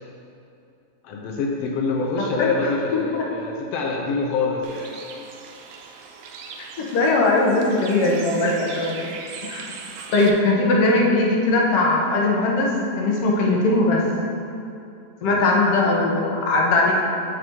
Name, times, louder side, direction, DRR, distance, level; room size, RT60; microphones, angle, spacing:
voice 1, 1.0-4.9 15.2-15.4, left 3 dB, 85° left, -1 dB, 1.4 m, -25 dB
voice 2, 2.9-3.2 6.8-9.0 9.4-9.7 10.1-12.7 13.0-14.0 15.2-16.9, left 2 dB, 65° left, -2 dB, 1.7 m, -20 dB
Bird, 4.6-10.3, right 5 dB, 85° right, 2.1 m, -39 dB
8.9 x 5.4 x 3.6 m, 2.7 s
omnidirectional pair, 3.5 m